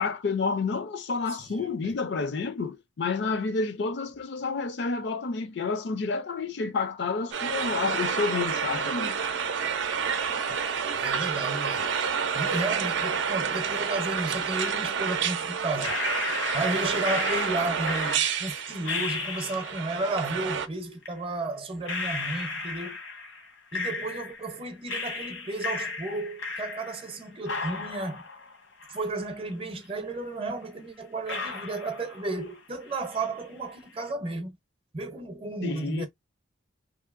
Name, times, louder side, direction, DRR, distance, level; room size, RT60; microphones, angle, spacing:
voice 1, 0.0-9.2 35.6-36.1, left 4 dB, 60° left, 0.5 m, -29 dB
voice 2, 1.4-2.0 10.9-11.9 12.3-16.0 16.5-23.0 23.7-28.2 28.9-34.6 34.9-36.1, right 2 dB, 30° right, 0.6 m, -33 dB
sound 1, 7.3-20.7, right 6 dB, 70° right, 0.5 m, -29 dB
sound 2, 15.8-19.9 21.0-21.1 21.9-24.5 24.9-27.2 27.5-29.5 29.8-29.9 30.6-30.7 31.3-32.6 32.9-33.4, left 3 dB, 85° left, 1.1 m, -35 dB
2.8 x 2.7 x 2.4 m
head